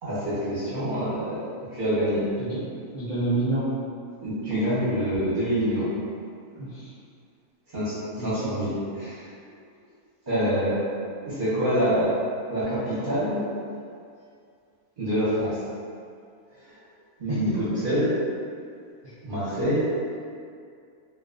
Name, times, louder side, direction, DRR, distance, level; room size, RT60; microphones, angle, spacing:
voice 1, 0.0-2.2 4.2-5.9 7.7-9.3 10.3-10.8 11.2-12.2 12.5-13.4 15.0-15.6 16.6-16.8 17.2-17.5 17.8-18.1 19.2-19.9, equal, 45° right, -12 dB, 0.7 m, -26 dB
voice 2, 2.9-3.6 6.6-6.9 8.1-8.5 19.0-19.1, right 2 dB, 70° right, -12 dB, 0.4 m, -28 dB
2.3 x 2.3 x 2.3 m, 2.3 s
omnidirectional pair, 1.6 m